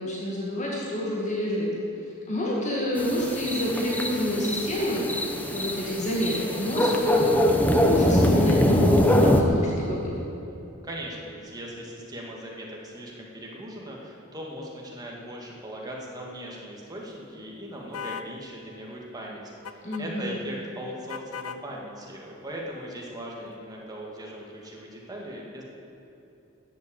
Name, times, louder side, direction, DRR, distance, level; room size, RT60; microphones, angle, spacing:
voice 1, 0.0-1.7 2.3-10.1 19.8-20.4, left 1 dB, 35° left, -4 dB, 2.1 m, -28 dB
sound 1, 3.0-9.4, left 1 dB, 10° left, 1.0 m, -23 dB
voice 2, 10.8-25.6, equal, 20° right, -2 dB, 2.4 m, -39 dB
sound 2, 17.9-18.3 19.6-20.0 21.1-21.6, left 7 dB, 80° left, 0.6 m, -36 dB
13.0 x 8.3 x 8.8 m, 2.8 s
head